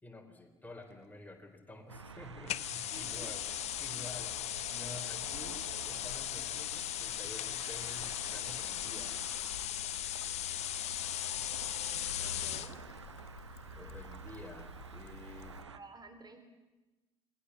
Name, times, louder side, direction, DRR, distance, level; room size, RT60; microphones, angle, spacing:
voice 1, 0.0-3.4 3.8-9.2 13.8-15.6, left 2 dB, 10° left, 5 dB, 4.1 m, -50 dB
sound 1, 1.9-15.8, right 4 dB, 85° right, 0.9 m, -49 dB
sound 2, 2.5-12.7, left 12 dB, 50° left, 0.7 m, -38 dB
Trickle dribble, 2.9-15.6, left 10 dB, 70° left, 1.8 m, -54 dB
voice 2, 2.9-3.4 12.2-12.8 15.7-16.4, right 3 dB, 30° right, 7 dB, 3.6 m, -52 dB
28.0 x 20.5 x 7.2 m, 1.1 s
figure-of-eight pair, 55°, 14 cm